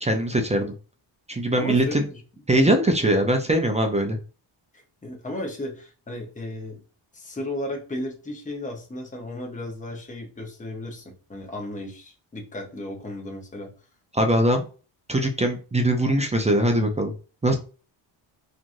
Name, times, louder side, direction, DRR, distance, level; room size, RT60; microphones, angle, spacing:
voice 1, 0.0-0.7 1.3-2.0 2.5-4.2 14.1-14.6 15.1-17.1 17.4-17.6, right 1 dB, 15° right, 4 dB, 0.5 m, -21 dB
voice 2, 1.6-2.2 5.0-6.8 7.1-13.7, left 1 dB, 15° left, 1 dB, 0.9 m, -34 dB
2.9 x 2.5 x 2.6 m, 0.36 s
cardioid pair, 80°, 48 cm